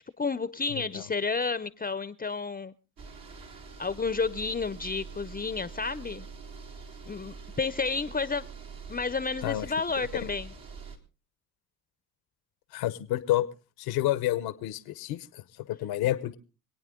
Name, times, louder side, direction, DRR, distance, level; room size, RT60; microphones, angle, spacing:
voice 1, 0.2-2.7 3.8-6.3 7.1-8.5 8.9-10.5, left 4 dB, 25° left, 17 dB, 0.7 m, -31 dB
voice 2, 0.7-1.0 9.4-9.7 10.0-10.3 12.7-13.5 13.8-16.4, left 14 dB, 80° left, 15 dB, 0.9 m, -30 dB
sound 1, 3.0-11.0, right 5 dB, 65° right, 2.8 m, -45 dB
26.0 x 8.9 x 3.7 m, 0.33 s
supercardioid pair, 55°, 37 cm